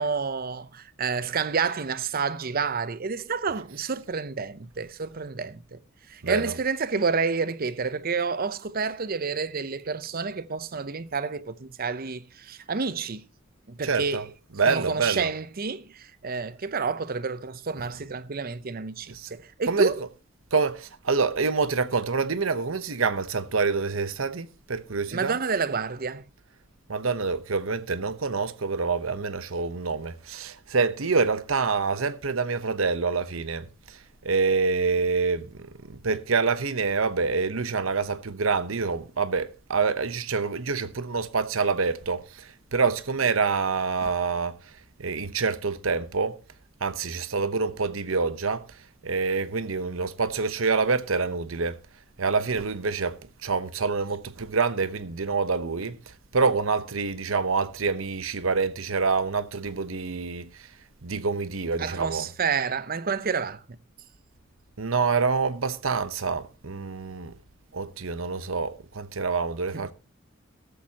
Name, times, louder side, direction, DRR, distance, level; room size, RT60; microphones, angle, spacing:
voice 1, 0.0-5.8 6.1-13.3 13.7-14.3 14.7-20.0 25.1-26.2 61.8-63.6 69.7-69.9, right 5 dB, 45° right, 0.7 m, -29 dB
voice 2, 6.2-6.6 13.8-14.2 14.5-15.3 19.1-19.3 19.6-20.1 20.5-25.4 26.9-44.5 45.0-46.4 46.8-48.7 49.0-51.8 52.2-60.7 61.0-62.3 64.8-67.3 67.7-69.9, right 4 dB, 90° right, 0.9 m, -27 dB
14.0 x 13.0 x 2.9 m
head